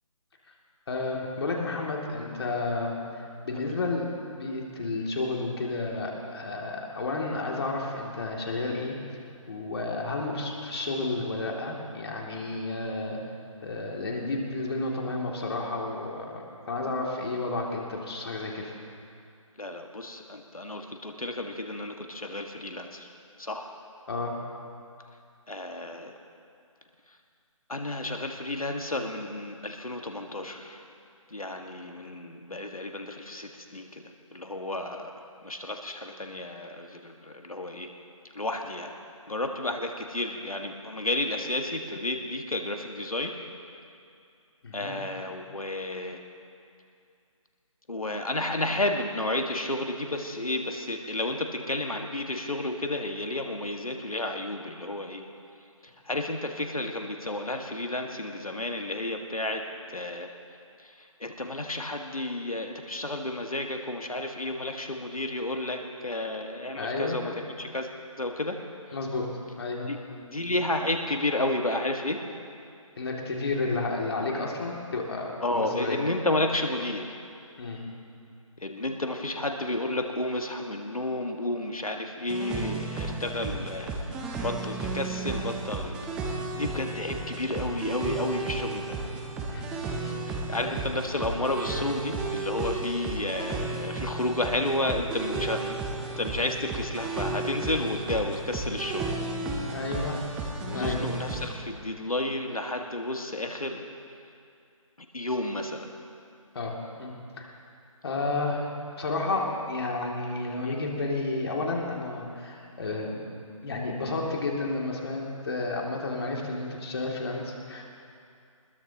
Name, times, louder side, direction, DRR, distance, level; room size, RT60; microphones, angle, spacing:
voice 1, 0.9-9.0 9.5-13.2 13.6-18.7 24.1-24.3 44.6-44.9 66.8-67.2 68.9-69.3 69.6-69.9 73.0-76.0 77.6-77.8 89.5-90.1 90.5-90.8 99.7-100.2 100.6-101.0 106.5-107.5 108.0-108.7 109.0-113.2 113.6-117.8, left 3 dB, 45° left, -1 dB, 2.6 m, -31 dB
voice 2, 19.6-23.1 23.4-23.7 25.5-26.1 27.7-30.8 31.3-34.0 34.3-35.1 35.4-37.9 38.4-38.9 39.3-43.3 44.7-46.2 47.9-55.2 56.1-59.6 59.9-60.3 61.2-67.3 67.6-67.9 68.2-68.6 69.9-70.0 70.3-72.2 75.4-77.2 78.6-86.0 86.5-88.9 90.3-95.8 96.2-99.1 100.6-103.9 105.1-105.9, left 2 dB, 90° left, 3 dB, 1.8 m, -31 dB
sound 1, 82.3-101.5, right 3 dB, 5° right, 0.6 m, -33 dB
21.0 x 21.0 x 2.9 m, 2.4 s
figure-of-eight pair, 155°, 18 cm